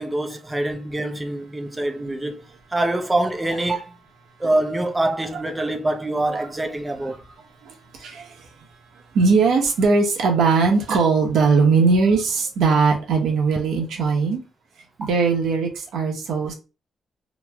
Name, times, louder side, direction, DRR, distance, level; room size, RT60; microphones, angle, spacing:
voice 1, 0.0-2.4 2.7-4.0 4.4-7.2 15.0-15.1, right 1 dB, 10° right, 0.4 m, -25 dB
voice 2, 8.0-8.4 9.1-14.4 15.0-16.5, right 4 dB, 85° right, 0.8 m, -19 dB
3.0 x 2.0 x 3.4 m
wide cardioid pair, 170°, 0 cm